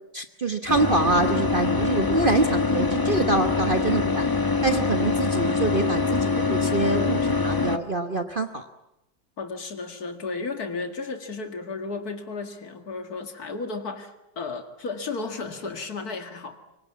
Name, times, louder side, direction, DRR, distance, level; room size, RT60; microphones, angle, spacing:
voice 1, 0.1-4.3 4.6-8.7, right 2 dB, 35° right, 7 dB, 1.1 m, -25 dB
sound 1, 0.7-7.8, left 4 dB, 15° left, 0.9 m, -24 dB
voice 2, 9.4-16.6, left 4 dB, 55° left, 7 dB, 2.5 m, -33 dB
25.0 x 23.5 x 8.4 m, 0.91 s
omnidirectional pair, 1.9 m